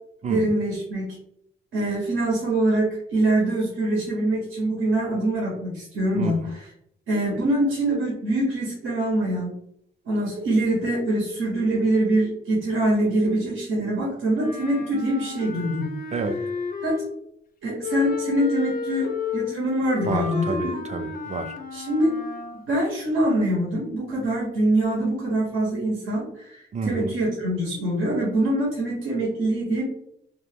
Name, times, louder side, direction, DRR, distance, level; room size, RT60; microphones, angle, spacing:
voice 1, 0.3-1.1 1.7-6.4 7.1-9.5 10.1-15.9 16.8-17.0 17.6-20.8 21.7-22.2 22.7-29.8, right 1 dB, 85° right, -3 dB, 0.8 m, -24 dB
voice 2, 6.1-6.6 16.1-16.4 20.0-21.6 26.7-27.2, right 4 dB, 35° right, 7 dB, 0.4 m, -30 dB
Wind instrument woodwind instrument, 14.3-17.3 17.8-22.7, left 5 dB, 45° left, 0.4 m, -32 dB
2.3 x 2.0 x 3.3 m, 0.71 s
cardioid pair, 65°, 21 cm